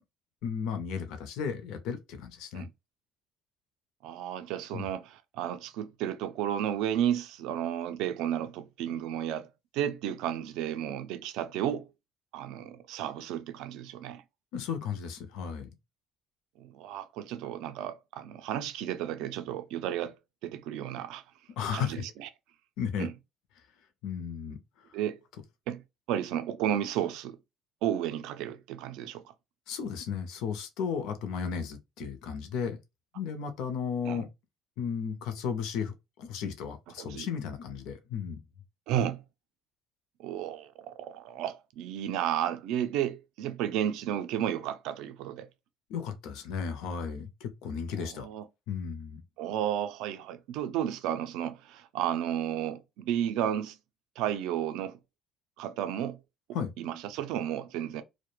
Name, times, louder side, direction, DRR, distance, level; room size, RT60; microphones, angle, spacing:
voice 1, 0.4-2.7 4.7-4.9 14.5-15.7 21.6-22.0 22.8-23.1 24.0-24.6 29.7-32.8 33.1-34.3 34.8-35.9 36.2-38.4 45.9-48.3 48.7-49.2 56.5-56.7, left 7 dB, 75° left, 0.5 m, -34 dB
voice 2, 4.0-9.5 9.7-11.8 12.3-14.2 16.6-20.1 20.4-21.2 21.7-22.3 23.0-23.1 24.9-25.2 25.7-25.8 26.1-27.4 27.8-29.2 34.0-34.2 37.0-37.3 38.9-39.2 40.2-45.5 48.0-48.5 49.4-53.8 54.2-55.0 55.6-56.2 56.8-58.0, right 10 dB, 75° right, 0.3 m, -33 dB
2.2 x 2.1 x 2.9 m
cardioid pair, 160°, 0 cm